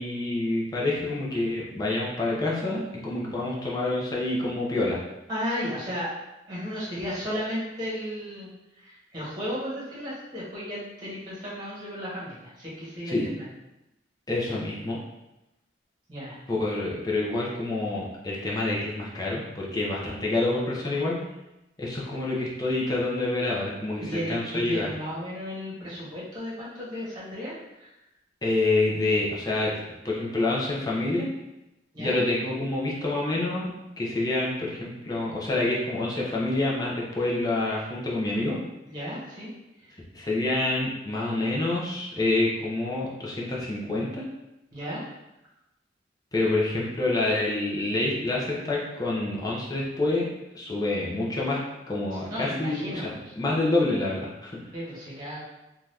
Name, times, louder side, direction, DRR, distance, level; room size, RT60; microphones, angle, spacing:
voice 1, 0.0-5.0 13.1-13.3 14.3-15.0 16.5-21.2 21.8-24.9 28.4-29.7 30.0-31.3 32.0-38.6 40.1-44.3 46.3-50.3 50.5-51.6 51.9-54.6, left 2 dB, 20° left, -4 dB, 0.6 m, -27 dB
voice 2, 5.3-6.1 6.5-8.5 8.8-13.5 16.1-16.4 24.1-27.9 31.9-32.2 38.9-39.5 39.8-39.9 44.7-45.0 52.3-53.3 54.7-55.4, equal, 25° right, -8 dB, 1.1 m, -34 dB
2.7 x 2.3 x 3.3 m, 0.94 s
head